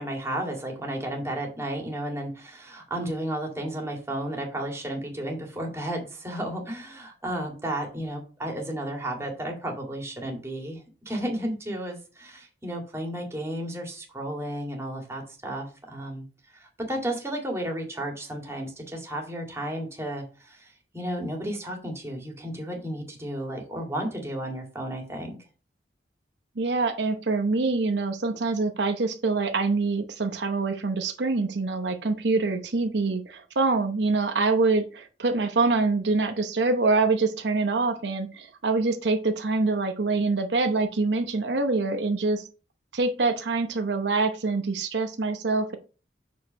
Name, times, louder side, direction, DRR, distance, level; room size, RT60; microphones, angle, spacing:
voice 1, 0.0-16.2 16.5-25.4, right 1 dB, 15° right, 1 dB, 2.1 m, -33 dB
voice 2, 26.6-42.4 42.9-45.8, right 3 dB, 80° right, 7 dB, 0.8 m, -25 dB
6.5 x 4.8 x 5.2 m, 0.35 s
head